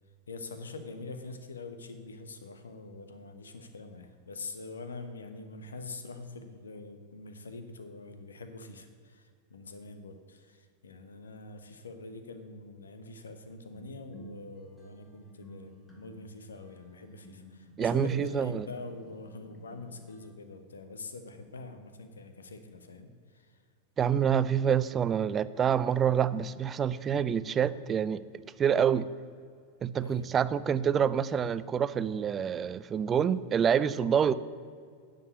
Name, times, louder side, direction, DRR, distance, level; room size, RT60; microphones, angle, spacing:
voice 1, 0.3-23.6 30.0-30.3, left 3 dB, 70° left, 8 dB, 1.0 m, -44 dB
sound 1, 13.7-20.2, right 1 dB, 10° left, 2.0 m, -53 dB
voice 2, 17.8-18.7 24.0-28.2 28.6-29.1 29.8-34.3, right 8 dB, 25° right, 16 dB, 0.4 m, -27 dB
9.6 x 5.2 x 8.1 m, 2.1 s
figure-of-eight pair, 90°, 0 cm